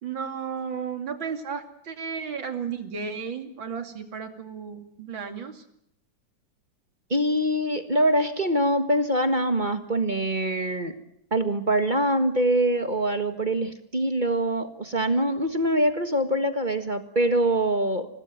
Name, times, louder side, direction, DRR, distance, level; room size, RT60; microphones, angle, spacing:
voice 1, 0.0-5.6, right 6 dB, 80° right, 7 dB, 3.3 m, -34 dB
voice 2, 7.1-10.9 11.3-18.1, right 1 dB, 25° right, 9 dB, 1.6 m, -24 dB
25.5 x 19.0 x 9.2 m, 0.74 s
omnidirectional pair, 2.1 m